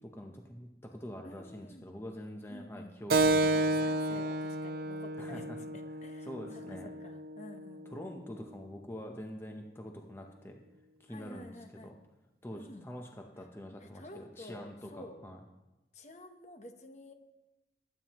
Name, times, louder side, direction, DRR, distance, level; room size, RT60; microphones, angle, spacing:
voice 1, 0.1-4.2 5.2-5.6 6.3-6.9 7.9-10.6 11.0-11.9 12.4-15.4, equal, 15° left, 2 dB, 0.8 m, -45 dB
voice 2, 1.2-1.8 2.5-2.9 3.5-5.5 5.7-8.1 11.1-12.0 12.5-12.9 13.8-15.2 15.9-17.1, left 1 dB, 40° left, 6 dB, 1.0 m, -51 dB
Keyboard (musical), 3.1-8.2, right 2 dB, 55° right, 0.7 m, -31 dB
21.5 x 9.2 x 3.0 m, 1.0 s
head